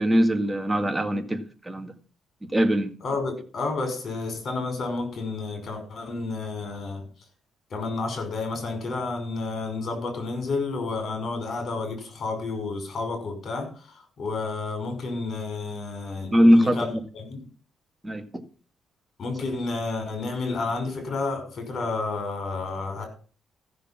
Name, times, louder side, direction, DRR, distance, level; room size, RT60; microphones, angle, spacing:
voice 1, 0.0-1.9 2.5-2.9 16.3-16.8 18.0-18.2, equal, 15° right, 7 dB, 2.0 m, -21 dB
voice 2, 3.0-7.0 7.7-17.5 19.2-23.1, left 3 dB, 50° left, 6 dB, 5.7 m, -31 dB
14.5 x 6.8 x 6.0 m, 0.39 s
cardioid pair, 90°, 0 cm